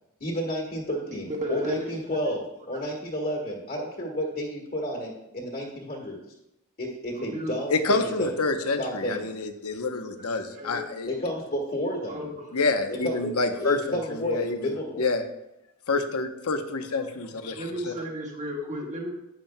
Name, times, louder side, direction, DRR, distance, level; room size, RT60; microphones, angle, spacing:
voice 1, 0.2-6.2 6.8-8.3 8.8-9.2 11.1-12.4 12.9-15.1, equal, 40° left, -1 dB, 1.5 m, -31 dB
voice 2, 1.1-1.9 2.7-2.8 7.2-7.5 10.5-10.8 12.1-12.4 17.4-19.1, equal, 35° right, 0 dB, 1.5 m, -33 dB
voice 3, 7.7-11.1 12.5-15.2 15.9-17.9, left 3 dB, 75° left, 7 dB, 0.8 m, -28 dB
11.0 x 8.8 x 2.2 m, 0.88 s
head